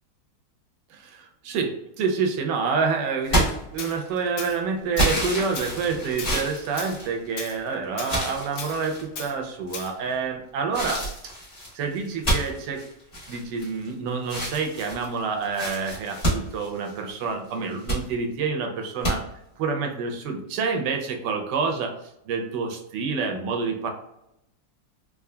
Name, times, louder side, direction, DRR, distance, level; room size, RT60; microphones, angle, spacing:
voice 1, 0.9-11.3 11.7-12.8 13.3-19.2 19.6-22.0 22.3-23.9, right 5 dB, 80° right, 3 dB, 1.3 m, -28 dB
sound 1, 3.2-4.3 5.0-7.6 8.0-9.0 9.7-10.1 10.7-13.9 14.2-17.2 17.6-18.0 19.0-19.1, right 1 dB, 30° left, 1.6 m, -28 dB
Tools, 3.8-3.9 4.4-4.6 5.0-5.2 5.5-5.8 6.2-6.4 6.8-7.0 7.4-7.6 8.0-8.2 8.6-8.8 9.2-9.3 9.7-9.9, left 5 dB, 70° left, 0.6 m, -36 dB
3.6 x 3.1 x 2.2 m, 0.83 s
omnidirectional pair, 1.9 m